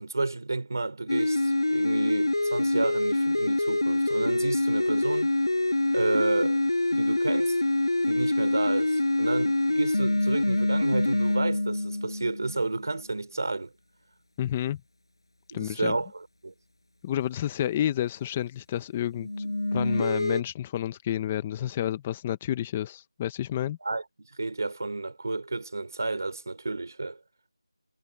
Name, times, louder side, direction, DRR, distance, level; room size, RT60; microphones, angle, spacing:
voice 1, 0.0-5.3 5.9-6.6 6.9-7.6 8.0-13.7 15.5-16.5 23.8-27.2, right 3 dB, 40° right, 3.4 m, -31 dB
sound 1, 1.1-12.8 19.1-20.4, left 2 dB, 65° left, 6.2 m, -25 dB
voice 2, 14.4-14.8 15.5-16.0 17.0-23.8, left 11 dB, 5° left, 0.4 m, -30 dB
figure-of-eight pair, 175°, 3 cm